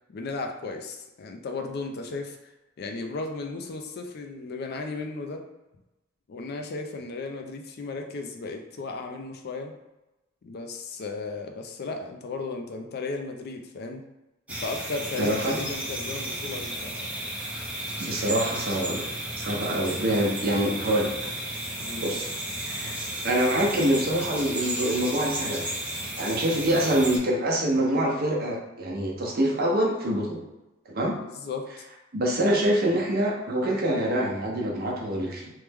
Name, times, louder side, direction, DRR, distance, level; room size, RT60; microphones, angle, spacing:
voice 1, 0.1-2.4 2.8-5.4 6.3-9.7 10.4-14.0 14.5-17.1 21.8-22.1 26.7-26.8 31.2-31.8, left 3 dB, 55° left, 3 dB, 0.4 m, -35 dB
sound 1, 14.5-27.2, right 1 dB, 5° right, 0.6 m, -33 dB
voice 2, 15.2-15.6 18.0-19.0 19.4-21.1 22.0-22.3 22.6-22.9 23.2-25.6 26.2-30.4 30.9-31.2 32.1-35.5, right 1 dB, 50° right, -2 dB, 0.7 m, -25 dB
3.2 x 2.1 x 3.4 m, 1.0 s
head